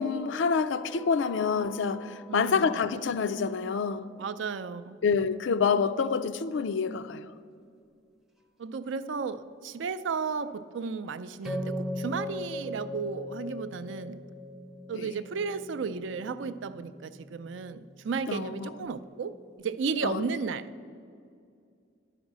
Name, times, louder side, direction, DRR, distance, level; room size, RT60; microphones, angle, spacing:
voice 1, 0.0-4.1 5.0-7.3 14.9-15.1 18.3-18.7 20.0-20.2, left 5 dB, 75° left, 0.4 m, -27 dB
sound 1, 0.9-3.5 11.4-20.5, left 1 dB, ahead, 0.5 m, -41 dB
voice 2, 2.3-2.8 4.2-5.0 8.6-14.2 14.9-20.7, right 5 dB, 70° right, 0.4 m, -34 dB
11.0 x 5.0 x 7.3 m
head